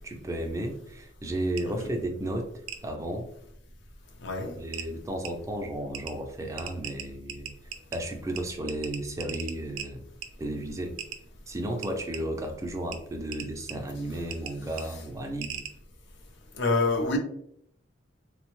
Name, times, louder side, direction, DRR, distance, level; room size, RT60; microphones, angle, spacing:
voice 1, 0.0-2.5 2.8-3.3 4.6-7.5 7.9-10.1 10.4-11.0 11.5-15.6, right 1 dB, 15° right, 3 dB, 0.3 m, -33 dB
sound 1, 1.6-1.7 2.7-2.8 4.2-4.3 4.7-4.9 5.2-5.3 5.9-6.1 6.6-8.0 8.4-8.5 8.7-9.9 10.2-10.3 11.0-11.2 11.8-12.2 12.9-13.0 13.3-13.7 14.3-14.5 14.8-14.9 15.4-15.7, right 8 dB, 90° right, 0.4 m, -37 dB
voice 2, 4.2-4.6 16.5-17.2, left 3 dB, 60° left, 4 dB, 0.5 m, -26 dB
3.5 x 2.0 x 2.9 m, 0.72 s
head